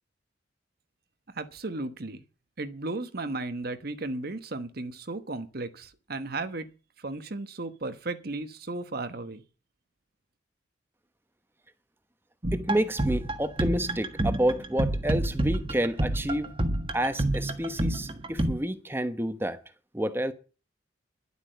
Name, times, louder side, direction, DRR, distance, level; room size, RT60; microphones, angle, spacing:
voice 1, 1.3-2.2 2.6-6.7 7.0-9.4, right 2 dB, 50° right, 1.1 m, -35 dB
sound 1, 12.4-18.5, right 1 dB, 30° right, 1.5 m, -28 dB
voice 2, 12.5-16.5 16.9-19.6 19.9-20.3, right 1 dB, 10° right, 1.0 m, -29 dB
11.5 x 8.2 x 7.8 m
head